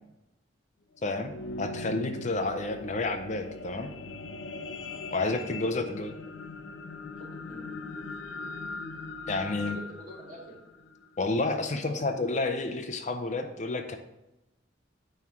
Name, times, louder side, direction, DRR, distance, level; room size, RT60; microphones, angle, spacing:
sound 1, 0.9-11.5 12.1-12.2, left 3 dB, 90° left, 0.7 m, -40 dB
voice 1, 1.0-3.9 5.1-6.1 9.3-9.8 11.2-14.0, left 2 dB, 40° left, 7 dB, 0.5 m, -30 dB
voice 2, 7.2-7.7 9.7-10.6 11.5-11.9, right 1 dB, 45° right, -3 dB, 2.4 m, -46 dB
9.3 x 3.2 x 5.7 m, 0.96 s
head